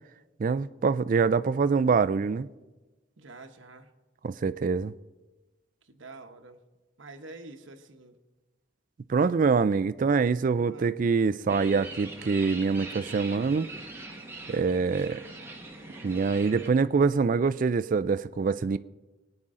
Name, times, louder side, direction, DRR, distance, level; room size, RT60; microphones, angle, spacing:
voice 1, 0.4-2.5 4.2-4.9 9.1-13.7 14.5-15.2 16.0-18.8, right 5 dB, 40° right, 0.3 m, -25 dB
voice 2, 3.2-3.9 5.8-6.6 7.0-8.2 10.6-11.1 12.1-12.4 14.8-15.3, right 2 dB, 75° right, 1.0 m, -48 dB
sound 1, 11.5-16.7, right 2 dB, 10° right, 1.3 m, -42 dB
21.0 x 8.9 x 3.7 m
head